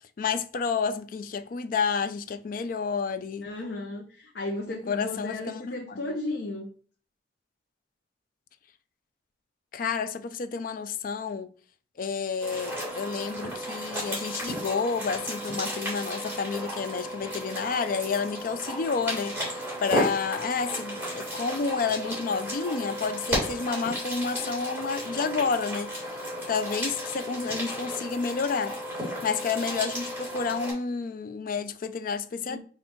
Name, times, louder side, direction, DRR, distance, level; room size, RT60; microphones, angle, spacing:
voice 1, 0.2-3.5 4.7-6.0 9.7-11.5 12.0-25.9 26.5-28.8 29.2-32.6, left 5 dB, 50° left, 0.4 m, -30 dB
voice 2, 3.4-6.7 32.4-32.6, left 2 dB, 75° left, 0.8 m, -34 dB
sound 1, 12.4-30.7, equal, 10° right, 2.3 m, -34 dB
4.3 x 2.6 x 4.4 m
head